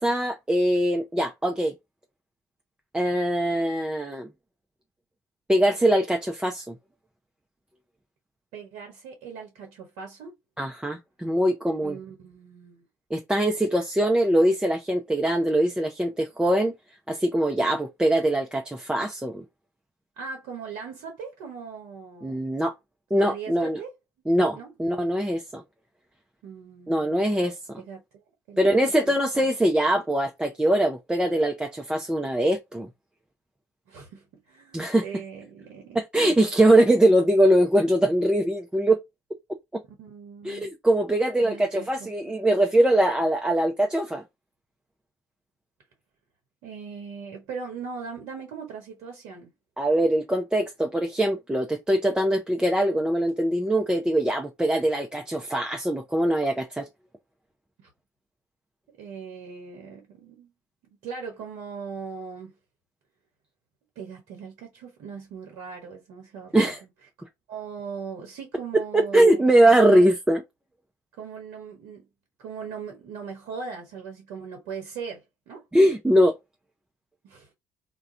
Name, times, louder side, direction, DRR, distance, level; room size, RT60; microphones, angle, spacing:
voice 1, 0.0-1.7 2.9-4.3 5.5-6.7 10.6-12.0 13.1-16.7 17.1-19.4 22.2-22.7 23.1-23.8 24.3-25.6 26.9-27.8 28.6-32.9 34.7-35.0 35.9-39.0 40.4-44.2 49.8-56.9 66.5-66.8 68.9-70.4 75.7-76.3, right 1 dB, 10° right, 0.6 m, -22 dB
voice 2, 8.5-10.4 11.8-12.8 20.2-22.5 23.2-23.9 24.5-24.7 26.4-27.5 27.8-28.7 29.1-29.5 33.9-36.0 40.0-40.7 41.4-42.4 46.6-49.5 57.8-57.9 58.9-60.5 60.8-62.5 64.0-66.8 67.2-69.4 69.8-70.1 71.2-72.1 72.4-75.7 77.2-77.5, right 6 dB, 70° right, 0.8 m, -39 dB
2.4 x 2.2 x 3.6 m
hypercardioid pair, 50°, 8 cm